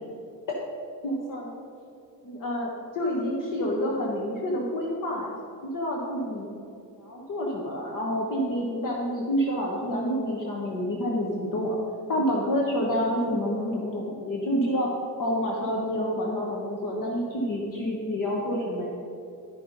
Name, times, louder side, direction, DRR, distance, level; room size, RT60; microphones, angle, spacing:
voice 1, 1.0-1.5 2.2-5.3 5.7-6.5 7.0-11.8 12.1-14.9 15.2-18.9, equal, 45° left, -2 dB, 1.3 m, -28 dB
10.5 x 5.8 x 5.2 m, 2.6 s
cardioid pair, 130°, 45 cm